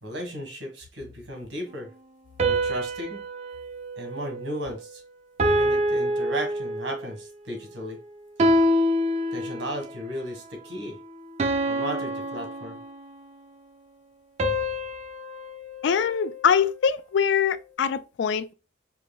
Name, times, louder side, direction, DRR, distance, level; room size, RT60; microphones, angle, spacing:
voice 1, 0.0-1.9 2.4-3.2 4.0-5.0 5.4-8.0 9.3-11.0 11.7-12.8, equal, 80° right, 1.4 m, -35 dB
sound 1, 2.4-4.9 5.4-7.1 8.4-9.9 11.4-13.3 14.4-16.8, equal, 35° right, 0.4 m, -27 dB
voice 2, 15.8-18.5, left 7 dB, 70° left, 0.3 m, -23 dB
4.7 x 3.0 x 2.2 m
head